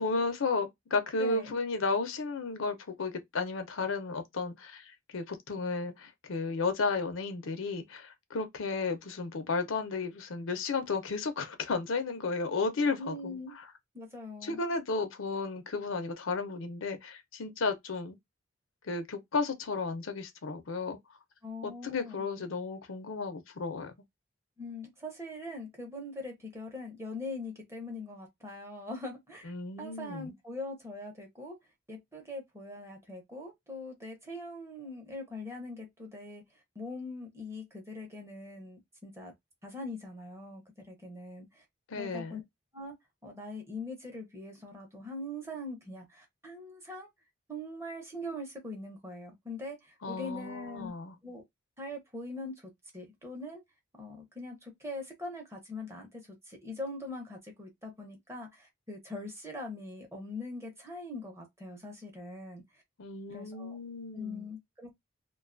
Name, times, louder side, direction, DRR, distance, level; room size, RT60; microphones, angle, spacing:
voice 1, 0.0-13.6 14.4-18.2 18.8-21.0 21.6-23.9 29.4-30.3 41.9-42.4 50.0-51.2 63.0-64.5, left 4 dB, 85° left, 0.6 m, -33 dB
voice 2, 1.2-1.6 13.0-13.6 13.9-14.6 21.4-22.2 24.6-31.6 31.9-36.4 36.7-39.3 39.6-41.6 42.0-42.4 42.7-43.0 43.2-47.1 47.5-50.9 51.2-51.4 51.8-53.6 54.0-62.6 63.3-63.8 64.1-64.9, left 2 dB, 15° right, 0.7 m, -42 dB
2.5 x 2.3 x 2.4 m
head